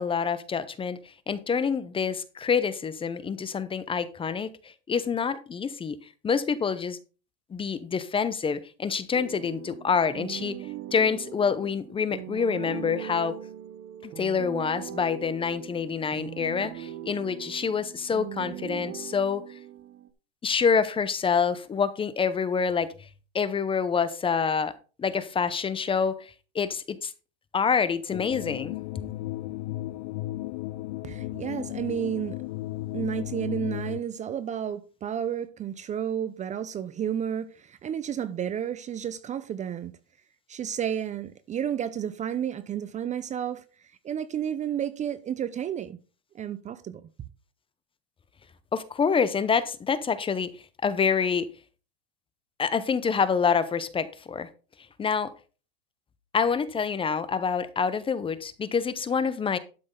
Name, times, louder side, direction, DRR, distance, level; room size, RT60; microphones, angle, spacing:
voice 1, 0.0-6.0 6.2-7.0 7.5-10.6 10.9-13.4 14.0-19.4 20.4-23.1 23.3-24.7 25.0-27.1 27.5-28.7 48.7-51.5 52.6-54.5 55.0-55.3 56.3-59.6, left 6 dB, 15° left, 0.7 m, -27 dB
sound 1, 9.1-20.1, right 12 dB, 45° right, 1.1 m, -40 dB
sound 2, 28.1-34.0, left 17 dB, 60° left, 0.6 m, -35 dB
voice 2, 31.0-32.4 32.9-39.9 40.5-43.6 44.0-46.0 46.3-47.0, right 9 dB, 25° right, 0.6 m, -31 dB
12.0 x 6.2 x 3.8 m
supercardioid pair, 130°, 31 cm